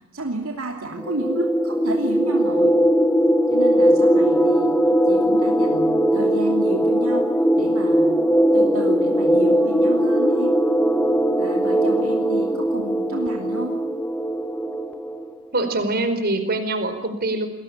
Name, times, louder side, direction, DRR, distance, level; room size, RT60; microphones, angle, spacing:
voice 1, 0.1-2.8 3.5-4.7 5.1-7.3 7.6-8.2 8.5-10.5 11.4-13.8, right 2 dB, 70° right, 2 dB, 2.9 m, -31 dB
sound 1, 0.9-15.3, equal, 5° left, 1.4 m, -19 dB
voice 2, 15.5-17.5, right 2 dB, 45° right, 8 dB, 4.8 m, -24 dB
29.0 x 21.5 x 8.8 m, 0.88 s
head